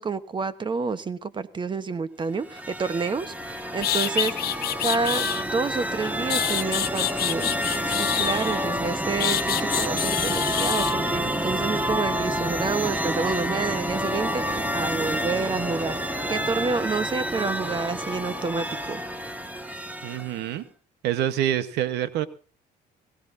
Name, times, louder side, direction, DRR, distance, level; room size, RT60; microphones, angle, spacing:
voice 1, 0.0-4.5 4.8-7.6 8.0-16.0 16.3-19.0, right 4 dB, 30° right, 1.1 m, -29 dB
sound 1, 2.3-20.5, equal, 10° right, 1.6 m, -29 dB
sound 2, 3.4-3.5 3.8-5.4 6.0-8.7 9.2-11.0, left 12 dB, 65° left, 1.2 m, -27 dB
voice 2, 20.0-20.7 21.0-22.3, right 11 dB, 85° right, 1.2 m, -26 dB
21.5 x 16.0 x 2.7 m
cardioid pair, 110°, 17 cm